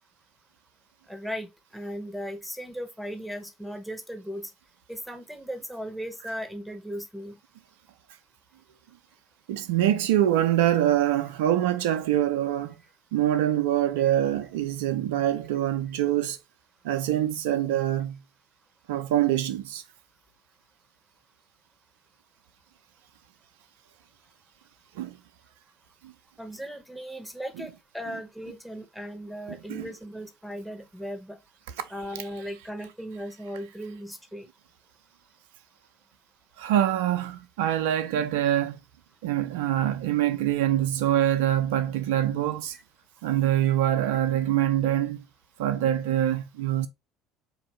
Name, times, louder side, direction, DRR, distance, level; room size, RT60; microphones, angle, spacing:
voice 1, 1.1-4.5 4.9-7.3 26.4-31.4 31.9-34.5, equal, ahead, 1.0 m, -37 dB
voice 2, 9.5-12.7 13.1-16.4 16.8-18.2 18.9-19.8 25.0-25.2 26.0-26.1 27.6-27.7 29.5-29.9 31.8-31.9 36.6-38.8 39.2-42.8 43.2-45.2 45.6-46.9, right 12 dB, 70° right, 0.3 m, -25 dB
4.0 x 2.6 x 3.1 m
figure-of-eight pair, 60°, 0 cm